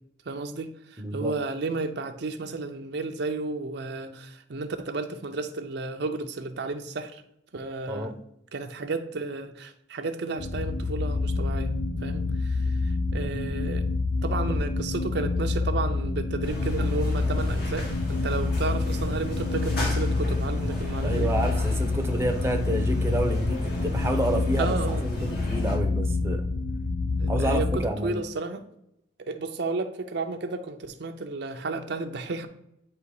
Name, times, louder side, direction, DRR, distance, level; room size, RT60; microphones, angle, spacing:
voice 1, 0.3-7.2 7.5-8.1 8.5-11.7 12.0-12.6 13.1-13.8 14.2-21.3 24.6-25.0 27.2-28.6 29.3-32.5, right 3 dB, 65° right, 6 dB, 0.6 m, -32 dB
voice 2, 1.0-1.3 7.9-8.1 21.0-26.5 27.3-28.2, right 1 dB, 15° right, 5 dB, 0.7 m, -29 dB
sound 1, 10.4-27.8, left 3 dB, 90° left, 0.7 m, -27 dB
sound 2, 16.4-25.8, equal, 60° left, 2.2 m, -35 dB
9.2 x 3.1 x 4.7 m, 0.78 s
head